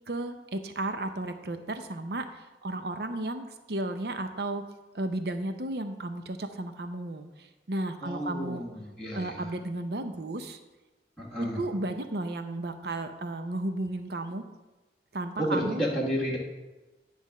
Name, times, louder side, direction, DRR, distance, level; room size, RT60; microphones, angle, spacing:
voice 1, 0.1-4.6 4.9-8.6 9.1-10.6 11.4-14.4 15.1-15.8, right 2 dB, 65° right, 8 dB, 0.7 m, -34 dB
voice 2, 8.0-9.4 11.2-11.6 15.4-16.4, equal, 5° left, -11 dB, 1.5 m, -31 dB
10.0 x 3.5 x 6.4 m, 1.1 s
head